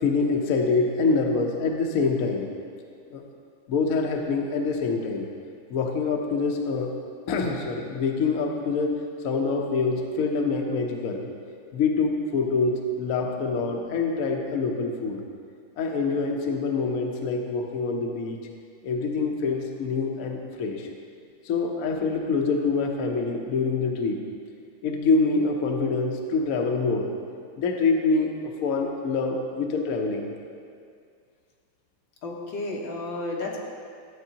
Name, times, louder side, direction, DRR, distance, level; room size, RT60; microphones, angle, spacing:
voice 1, 0.0-2.5 3.1-3.2 3.7-5.3 5.7-6.9 7.3-11.3 11.7-15.2 15.8-18.4 18.8-20.8 21.5-24.2 24.8-27.1 27.6-28.3 28.6-30.3, left 4 dB, 60° left, 2 dB, 1.0 m, -25 dB
voice 2, 32.2-33.6, left 2 dB, 85° left, -1 dB, 1.8 m, -32 dB
13.0 x 7.8 x 2.9 m, 2.2 s
omnidirectional pair, 2.0 m